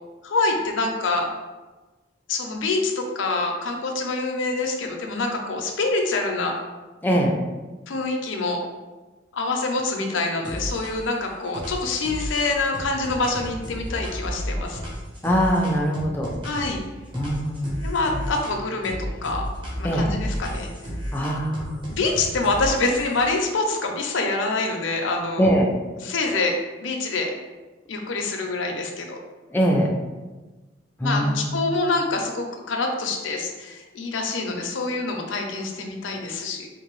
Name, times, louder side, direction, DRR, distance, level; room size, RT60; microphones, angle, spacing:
voice 1, 0.2-1.3 2.3-6.6 7.9-8.6 9.3-14.8 16.4-16.8 17.8-19.5 19.8-20.7 21.9-25.5 26.0-27.3 27.9-29.2 31.0-36.7, left 3 dB, 80° left, 2 dB, 0.5 m, -26 dB
voice 2, 7.0-7.4 15.2-16.3 17.1-17.8 18.1-18.3 19.8-20.2 21.1-21.8 25.4-25.7 29.5-29.9 31.0-31.7, equal, 10° left, -1 dB, 0.4 m, -22 dB
sound 1, 10.4-11.2 11.5-16.8 17.1-18.6 18.8-23.3, equal, 25° right, 0.8 m, -33 dB
3.7 x 2.6 x 3.0 m, 1.2 s
head